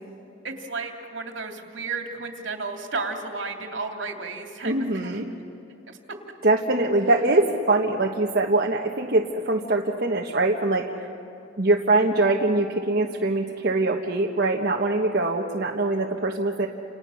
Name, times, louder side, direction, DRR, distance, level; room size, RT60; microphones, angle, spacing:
voice 1, 0.4-5.3 5.9-6.0, right 4 dB, 75° right, 4 dB, 2.7 m, -33 dB
voice 2, 4.6-5.3 6.4-11.1 11.6-16.7, right 2 dB, 55° right, 0 dB, 1.3 m, -23 dB
30.0 x 28.5 x 6.4 m, 2.8 s
head